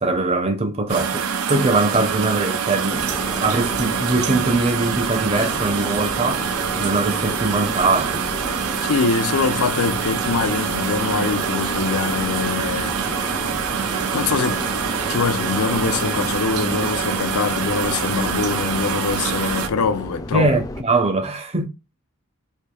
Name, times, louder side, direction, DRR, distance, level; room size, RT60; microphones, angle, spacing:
voice 1, 0.0-6.5 6.8-8.2 20.3-21.7, right 3 dB, 25° right, 0.6 m, -22 dB
sound 1, 0.9-19.7, right 7 dB, 80° right, 0.5 m, -25 dB
sound 2, 2.9-20.8, left 2 dB, 15° left, 0.3 m, -33 dB
voice 2, 8.8-13.0 13.8-14.7 15.1-20.5, left 5 dB, 90° left, 0.5 m, -23 dB
4.5 x 2.7 x 2.3 m
head